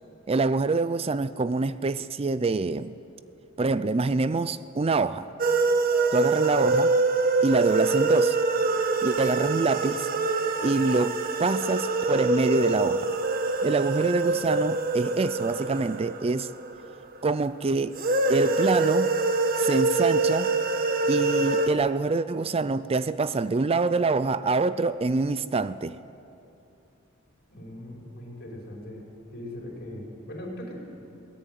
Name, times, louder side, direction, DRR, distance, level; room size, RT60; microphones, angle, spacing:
voice 1, 0.3-3.0 3.6-5.3 6.1-7.0 7.4-8.4 9.0-10.1 10.6-13.2 13.6-16.5 17.2-18.0 18.3-19.1 19.6-20.5 21.1-26.0, right 3 dB, 30° right, 0.4 m, -25 dB
sound 1, 5.4-17.2 17.9-21.7, right 3 dB, 45° right, 1.4 m, -25 dB
voice 2, 27.5-29.0 29.3-30.7, left 1 dB, 55° left, 5.7 m, -39 dB
21.5 x 18.5 x 9.3 m
head